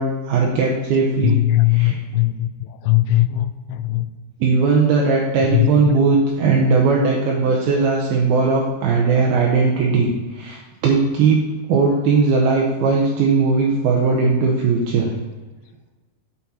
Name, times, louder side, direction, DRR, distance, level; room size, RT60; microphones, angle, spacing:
voice 1, 0.0-1.4 1.7-2.0 4.4-11.4 11.7-15.1, right 4 dB, 75° right, 2.3 m, -18 dB
voice 2, 1.2-2.5 2.9-4.1 5.5-6.0, left 16 dB, 85° left, 3.0 m, -19 dB
9.6 x 6.1 x 4.2 m
omnidirectional pair, 5.5 m